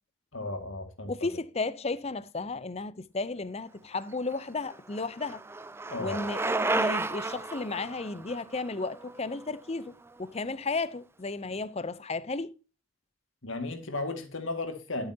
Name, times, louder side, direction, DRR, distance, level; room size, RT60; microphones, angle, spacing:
voice 1, 0.3-1.1 5.9-6.2 13.4-15.1, left 2 dB, 60° left, 2.1 m, -34 dB
voice 2, 1.1-5.4 6.0-9.9 10.2-12.5, left 3 dB, 30° left, 0.6 m, -34 dB
Bicycle, 4.1-10.1, right 2 dB, 10° right, 0.4 m, -33 dB
11.5 x 8.6 x 2.8 m
head